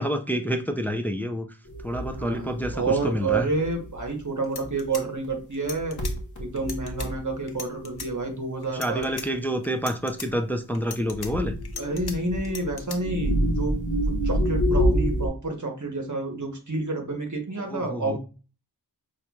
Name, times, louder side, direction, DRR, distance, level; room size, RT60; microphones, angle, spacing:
voice 1, 0.0-1.5 1.8-3.5 8.7-11.6 17.7-18.2, equal, 5° left, 0.4 m, -28 dB
sound 1, 1.7-4.1 4.6-4.8 5.2-5.3 5.6-7.3 8.0-8.1 8.9-9.1 11.1-15.3, equal, 50° left, 1.1 m, -27 dB
voice 2, 2.1-6.0 6.4-9.2 11.8-13.8 14.0-18.2, right 3 dB, 45° right, 1.1 m, -29 dB
sound 2, 4.1-4.2 4.4-6.1 6.6-7.1 7.5-8.1 8.6-9.3 9.6-10.3 10.7-12.1 12.4-13.0, left 5 dB, 70° left, 0.7 m, -38 dB
5.6 x 2.5 x 2.3 m
wide cardioid pair, 50°, 40 cm